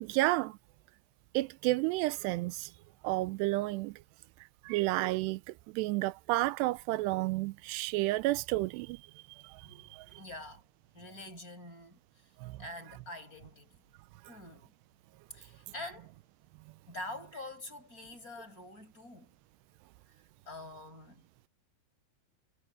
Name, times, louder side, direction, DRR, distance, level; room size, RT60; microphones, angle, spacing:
voice 1, 0.0-0.5 1.3-2.7 3.0-3.9 4.7-5.4 5.8-9.0 12.4-12.5, right 19 dB, 85° right, 2.7 m, -30 dB
voice 2, 10.2-10.6 10.9-12.3 12.6-13.8 14.3-14.7 15.3-16.2 16.9-19.4 20.5-21.2, left 2 dB, 20° left, 7.1 m, -46 dB
omnidirectional pair, 4.8 m